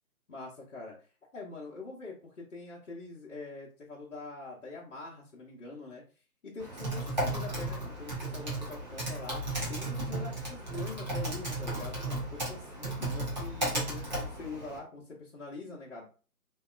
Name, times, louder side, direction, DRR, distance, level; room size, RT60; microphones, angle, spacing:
voice 1, 0.3-0.9 1.3-6.0 6.4-9.4 9.7-16.0, left 3 dB, 55° left, -6 dB, 0.8 m, -44 dB
Typing, 6.6-14.8, right 1 dB, 30° right, 0.7 m, -35 dB
2.7 x 2.2 x 2.4 m, 0.38 s
figure-of-eight pair, 160°, 46 cm